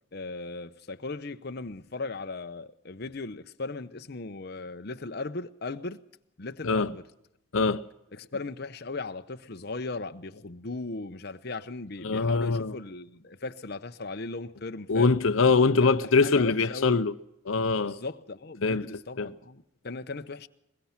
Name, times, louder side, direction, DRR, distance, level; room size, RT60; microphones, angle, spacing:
voice 1, 0.1-6.0 6.4-7.0 8.1-15.1 15.8-15.9 16.2-17.0 17.8-20.5, left 3 dB, 50° left, 0.8 m, -37 dB
voice 2, 7.5-7.8 12.0-12.7 14.9-17.1 17.4-18.0 18.6-18.9 19.2-19.3, left 4 dB, 85° left, 0.7 m, -23 dB
22.0 x 21.5 x 5.9 m
head